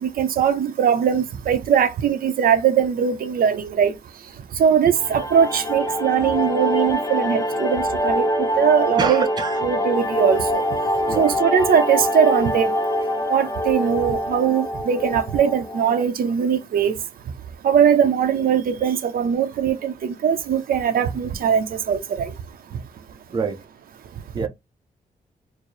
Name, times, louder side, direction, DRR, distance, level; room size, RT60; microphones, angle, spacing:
voice 1, 0.0-3.9 4.6-9.2 9.6-10.6 11.2-12.7 13.3-16.9 17.6-22.3, right 7 dB, 80° right, 0.6 m, -20 dB
sound 1, 4.9-16.0, equal, 25° left, 0.5 m, -24 dB
voice 2, 9.0-9.6 11.1-11.3 23.3-23.6 24.3-24.5, right 5 dB, 30° right, 0.5 m, -25 dB
4.6 x 2.0 x 3.1 m
wide cardioid pair, 165°, 15 cm